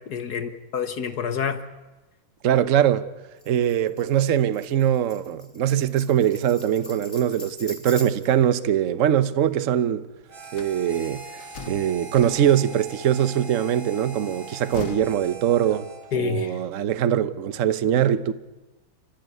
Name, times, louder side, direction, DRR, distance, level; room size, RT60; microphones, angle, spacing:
voice 1, 0.1-1.6 16.1-16.6, left 7 dB, 60° left, 1.6 m, -28 dB
voice 2, 2.4-3.1 3.5-10.1 10.5-15.9 16.1-18.3, right 10 dB, 50° right, 1.1 m, -22 dB
Tambourine, 3.4-8.4, left 2 dB, 15° left, 3.4 m, -42 dB
Harmonica, 10.3-16.3, right 3 dB, 25° right, 2.7 m, -42 dB
sound 1, 10.4-13.0 14.3-16.1, left 5 dB, 80° left, 2.2 m, -41 dB
29.5 x 14.5 x 9.5 m
omnidirectional pair, 2.0 m